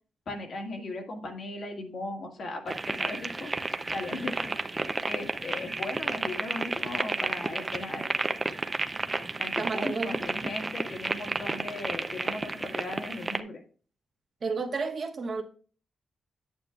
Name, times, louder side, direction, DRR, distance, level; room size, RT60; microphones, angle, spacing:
voice 1, 0.3-3.5 3.9-4.7 5.1-8.1 9.4-13.6, left 2 dB, 55° left, 2 dB, 1.7 m, -37 dB
sound 1, 2.7-13.4, right 3 dB, 20° right, 0.6 m, -32 dB
voice 2, 9.6-10.1 14.4-15.4, right 4 dB, 45° right, 2 dB, 1.3 m, -31 dB
9.1 x 9.0 x 2.4 m, 0.40 s
wide cardioid pair, 135°, 0 cm